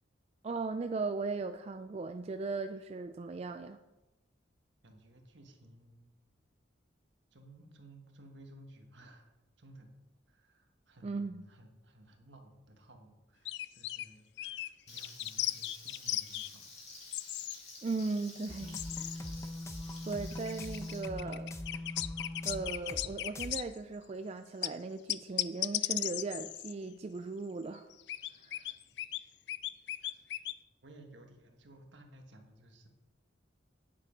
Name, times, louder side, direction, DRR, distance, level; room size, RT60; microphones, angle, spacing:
voice 1, 0.4-3.8 11.0-11.4 17.8-19.3 20.1-21.5 22.4-27.9 28.4-28.7, right 3 dB, 35° right, 9 dB, 0.3 m, -38 dB
voice 2, 4.8-6.1 7.3-10.0 10.3-16.6 30.0-30.1 30.8-32.9, right 1 dB, 70° right, 4 dB, 1.4 m, -57 dB
sound 1, 13.4-14.1 14.4-14.7 15.0-16.5 17.1-17.5 17.9-18.0 18.7-19.2 20.1-23.8 24.6-24.7 25.1-26.7 27.9-29.2 29.5-30.5, left 14 dB, 60° left, 0.3 m, -36 dB
Frying (food), 14.9-21.0, left 3 dB, 35° left, 2.6 m, -51 dB
sound 2, 18.5-23.1 23.4-23.5, left 1 dB, 15° left, 0.7 m, -41 dB
9.3 x 7.4 x 5.1 m, 1.1 s
head